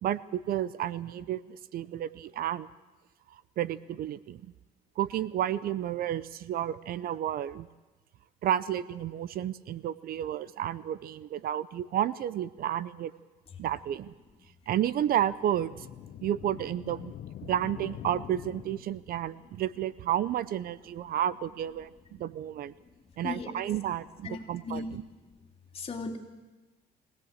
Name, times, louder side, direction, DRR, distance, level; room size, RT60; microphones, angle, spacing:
voice 1, 0.0-2.7 3.3-4.4 5.0-7.7 8.4-13.1 13.6-14.1 14.7-15.9 16.2-17.1 17.5-22.7 23.2-25.0, right 11 dB, 60° right, 18 dB, 0.7 m, -31 dB
sound 1, 15.4-19.2, left 11 dB, 60° left, 0.9 m, -44 dB
voice 2, 24.2-25.0 25.7-26.2, left 3 dB, 35° left, 3 dB, 2.9 m, -36 dB
23.5 x 17.0 x 8.1 m, 1.2 s
cardioid pair, 110°, 17 cm